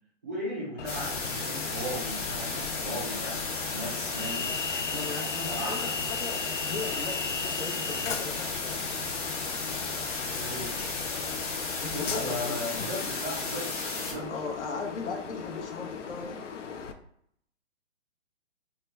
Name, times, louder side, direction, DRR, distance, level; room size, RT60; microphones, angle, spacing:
voice 1, 0.2-3.4 3.7-4.5 5.4-5.9 10.3-10.8 11.9-14.4, equal, 15° right, -7 dB, 0.3 m, -36 dB
Train, 0.8-16.9, left 5 dB, 90° left, 0.5 m, -37 dB
sound 1, 0.9-14.1, left 3 dB, 30° left, 0.9 m, -34 dB
voice 2, 4.9-8.9 11.8-12.8 14.3-16.4, left 4 dB, 70° left, 2 dB, 0.9 m, -38 dB
2.9 x 2.2 x 3.2 m, 0.70 s
hypercardioid pair, 135°, 36 cm